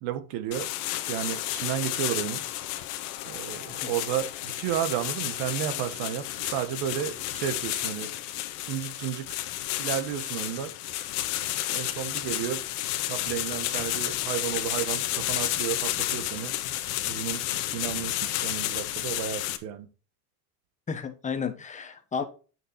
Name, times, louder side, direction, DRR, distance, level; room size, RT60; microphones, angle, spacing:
voice 1, 0.0-0.7 1.1-2.4 3.2-8.1 8.7-9.3 9.8-10.7 11.7-12.6 13.1-16.5 17.1-17.4 17.7-19.9, right 11 dB, 55° right, 1.4 m, -32 dB
sound 1, 0.5-19.6, left 14 dB, 75° left, 1.5 m, -31 dB
voice 2, 20.9-22.2, left 6 dB, 15° left, 1.2 m, -32 dB
9.1 x 6.4 x 4.2 m
supercardioid pair, 145°, 47 cm